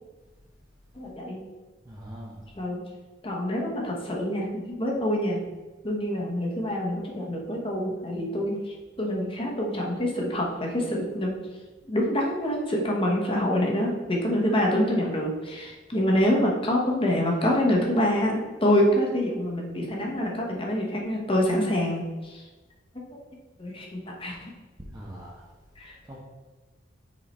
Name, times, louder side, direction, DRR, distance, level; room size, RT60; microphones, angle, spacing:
voice 1, 0.9-1.4 2.6-2.8 3.2-5.4 5.8-11.3 11.9-22.5 23.6-24.5 25.8-26.2, left 1 dB, 30° left, -1 dB, 1.1 m, -26 dB
voice 2, 1.8-2.5 24.8-25.4 26.1-26.2, equal, 20° right, -4 dB, 0.8 m, -41 dB
6.1 x 3.8 x 4.3 m, 1.2 s
head